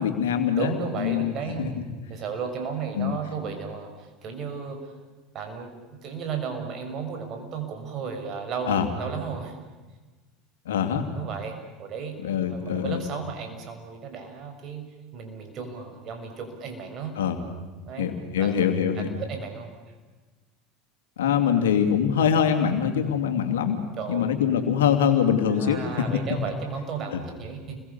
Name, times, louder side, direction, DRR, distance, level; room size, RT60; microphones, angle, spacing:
voice 1, 0.0-1.7 3.0-3.2 8.7-8.9 10.7-11.0 12.2-13.0 17.2-17.4 18.0-19.1 21.2-23.8 24.1-25.8 27.1-27.2, left 8 dB, 80° left, 6 dB, 2.8 m, -23 dB
voice 2, 0.5-1.7 2.1-4.9 5.3-5.7 6.0-9.5 11.1-12.2 12.5-14.9 15.1-17.2 17.9-18.1 18.3-18.5 18.9-19.7 24.0-24.3 25.5-27.8, right 6 dB, 50° right, 5 dB, 6.1 m, -34 dB
30.0 x 22.0 x 7.1 m, 1.3 s
hypercardioid pair, 80°, 0 cm